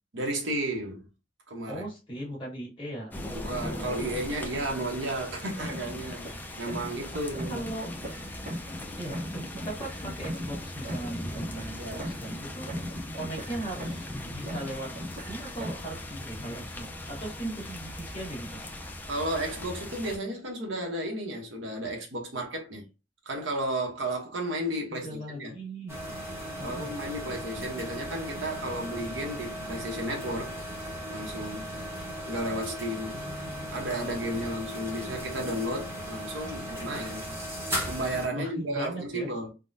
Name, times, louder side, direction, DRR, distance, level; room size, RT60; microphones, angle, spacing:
voice 1, 0.1-1.0 1.5-1.8 3.3-6.3 6.6-7.7 11.8-12.1 19.0-22.9 23.3-25.5 26.6-30.6 31.1-31.7 32.3-33.2 33.7-37.3 37.9-39.5, right 1 dB, 80° right, 1.0 m, -33 dB
voice 2, 1.7-3.1 7.1-7.2 7.5-7.9 9.0-12.7 13.1-18.6 24.6-26.0 26.6-26.9 33.1-34.5 38.3-39.3, right 1 dB, 25° left, 1.5 m, -39 dB
sound 1, 3.1-20.2, left 1 dB, 10° left, 0.5 m, -39 dB
sound 2, 5.6-7.1 7.3-8.8 9.1-12.4 12.7-14.2 14.5-15.9, equal, 45° right, 0.8 m, -39 dB
sound 3, 25.9-38.3, equal, 15° right, 1.0 m, -37 dB
3.5 x 2.2 x 2.6 m
head